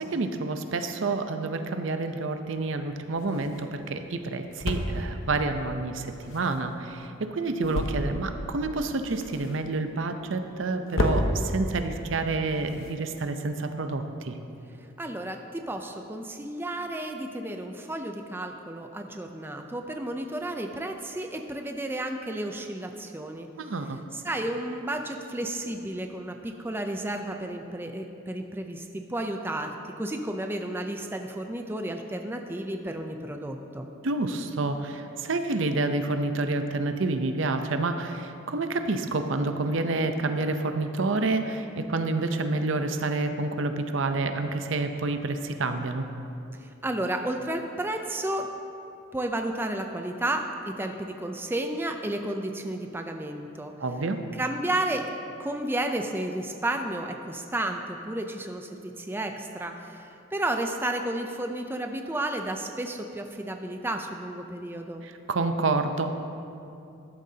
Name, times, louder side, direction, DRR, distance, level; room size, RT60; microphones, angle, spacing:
voice 1, 0.0-14.4 23.6-24.0 34.0-46.1 53.8-54.2 65.0-66.1, right 3 dB, 65° right, 7 dB, 0.6 m, -28 dB
sound 1, 2.4-13.6, left 1 dB, 85° left, 1.0 m, -34 dB
voice 2, 15.0-23.5 24.1-33.9 46.6-48.5 49.1-53.7 54.4-55.1 55.4-65.0, right 1 dB, 10° right, 4 dB, 0.5 m, -32 dB
13.5 x 11.5 x 2.8 m, 2.6 s
head